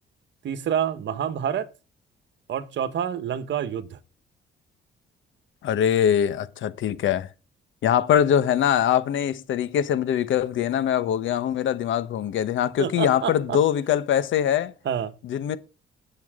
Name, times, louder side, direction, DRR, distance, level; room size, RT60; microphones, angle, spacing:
voice 1, 0.4-1.7 2.5-4.0 12.8-13.6 14.8-15.1, right 9 dB, 65° right, 1.4 m, -28 dB
voice 2, 5.6-7.3 7.8-14.7 15.2-15.6, left 9 dB, 75° left, 1.2 m, -23 dB
20.5 x 7.2 x 3.7 m
cardioid pair, 90°, 20 cm